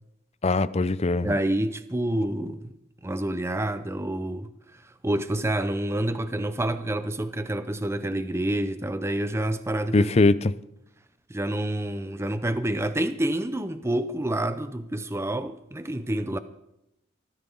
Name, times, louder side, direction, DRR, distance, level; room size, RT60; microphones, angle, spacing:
voice 1, 0.4-1.3 9.9-10.5, left 2 dB, 30° left, 0.5 m, -21 dB
voice 2, 1.2-2.7 3.0-10.1 11.3-16.4, right 1 dB, 15° right, 0.6 m, -28 dB
23.5 x 14.0 x 3.9 m
head